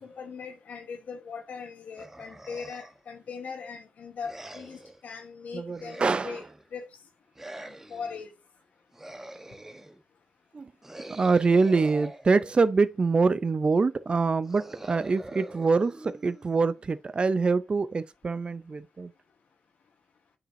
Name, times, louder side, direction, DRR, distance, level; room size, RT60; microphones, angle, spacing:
voice 1, 0.0-6.4 6.7-6.9 7.6-8.3, left 5 dB, 80° left, 1.2 m, -40 dB
sound 1, 2.0-3.1 4.2-5.0 5.7-6.7 7.3-8.2 8.9-10.0 10.8-12.9 14.4-16.8, right 1 dB, 15° right, 1.0 m, -45 dB
voice 2, 5.5-6.4 10.5-10.7 11.1-19.1, right 4 dB, 40° right, 0.4 m, -25 dB
8.8 x 5.0 x 2.7 m
cardioid pair, 80°, 3 cm